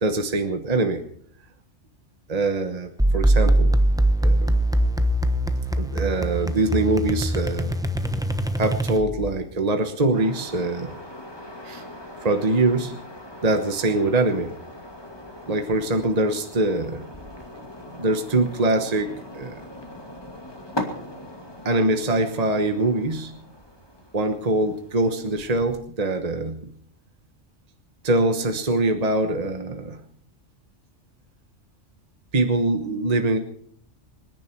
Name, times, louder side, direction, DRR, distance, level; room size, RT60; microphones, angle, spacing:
voice 1, 0.0-1.0 2.3-3.8 4.2-4.6 5.8-7.8 8.6-10.9 11.6-11.9 12.2-13.0 13.4-14.5 15.5-17.0 18.0-19.6 21.6-23.3 24.1-26.6 28.0-30.0 32.3-33.4, right 2 dB, 35° right, 6 dB, 1.2 m, -23 dB
sound 1, 3.0-9.3, right 1 dB, 5° right, 1.0 m, -22 dB
sound 2, 10.1-25.8, left 1 dB, 20° left, 2.5 m, -40 dB
26.0 x 10.5 x 4.6 m, 0.64 s
omnidirectional pair, 1.3 m